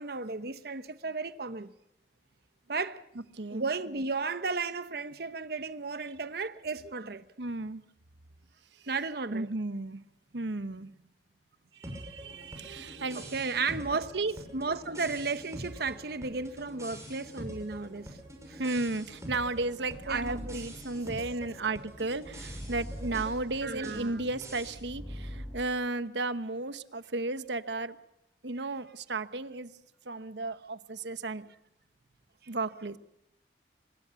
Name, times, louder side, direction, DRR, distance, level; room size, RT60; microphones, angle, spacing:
voice 1, 0.0-1.7 2.7-3.0 3.5-7.3 8.9-9.5 12.7-12.9 13.1-14.2 14.5-18.2 18.5-18.6 20.1-20.6 23.6-24.2, right 4 dB, 60° right, 1.0 m, -34 dB
voice 2, 3.3-3.6 7.4-7.8 9.3-10.0 10.3-10.9 11.7-13.3 14.1-14.4 18.6-28.0 28.4-29.7 30.0-31.5 32.5-33.0, right 2 dB, 90° right, 1.1 m, -34 dB
sound 1, 11.8-24.8, right 1 dB, 15° right, 6.1 m, -45 dB
sound 2, 19.2-25.6, equal, 5° left, 5.1 m, -44 dB
25.5 x 21.0 x 7.0 m
head